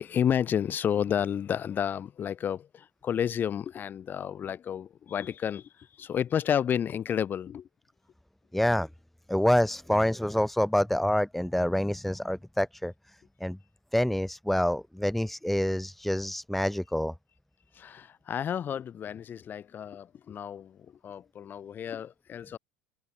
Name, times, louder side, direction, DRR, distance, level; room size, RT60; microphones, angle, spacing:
voice 1, 0.0-7.7 17.7-22.6, left 9 dB, 30° left, 5.5 m, -31 dB
voice 2, 8.5-8.9 9.3-12.9 13.4-13.6 13.9-17.1, left 1 dB, ahead, 2.9 m, -27 dB
figure-of-eight pair, 70°, 6 cm